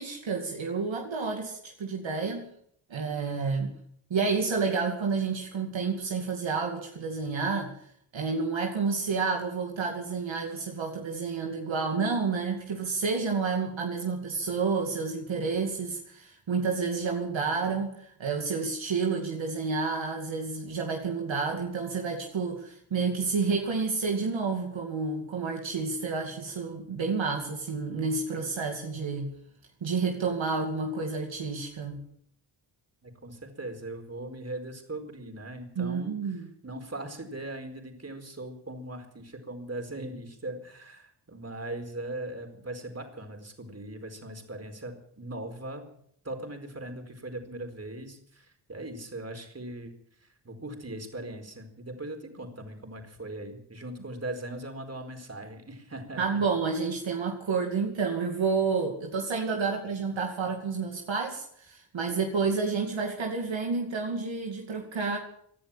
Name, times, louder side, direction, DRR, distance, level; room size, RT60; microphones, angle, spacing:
voice 1, 0.0-2.5 2.9-3.7 4.1-7.8 8.1-29.3 29.8-32.0 35.8-36.5 56.2-65.2, right 4 dB, 70° right, 1 dB, 2.5 m, -30 dB
voice 2, 33.0-45.8 46.2-49.9 50.2-56.4 59.5-59.6, right 1 dB, 30° right, 4 dB, 4.5 m, -40 dB
18.0 x 11.0 x 7.3 m, 0.67 s
cardioid pair, 55°, 48 cm